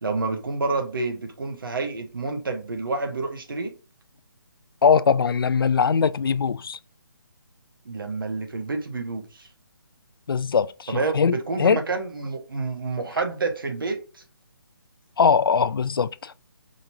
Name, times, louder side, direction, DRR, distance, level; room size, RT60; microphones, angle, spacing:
voice 1, 0.0-3.7 7.8-9.5 10.9-14.0, right 3 dB, 65° right, 1.2 m, -28 dB
voice 2, 4.8-6.8 10.3-11.8 15.2-16.3, left 6 dB, 75° left, 0.4 m, -21 dB
5.1 x 2.9 x 2.7 m
hypercardioid pair, 180°, 12 cm